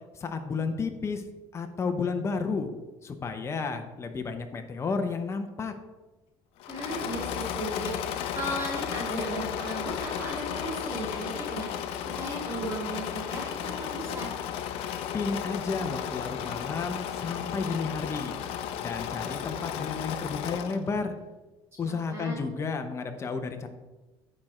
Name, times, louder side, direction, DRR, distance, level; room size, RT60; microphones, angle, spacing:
voice 1, 0.2-1.2 1.5-2.7 3.0-5.7 15.1-18.3 18.8-21.1 21.8-23.7, left 4 dB, 30° left, 6 dB, 0.8 m, -32 dB
Engine / Mechanisms, 6.6-20.9, left 9 dB, 70° left, 0.6 m, -34 dB
voice 2, 6.7-7.9 8.3-11.7 12.0-14.3 21.8-22.4, right 1 dB, 25° right, -5 dB, 2.7 m, -36 dB
8.6 x 4.4 x 4.9 m, 1.1 s
cardioid pair, 115°, 10 cm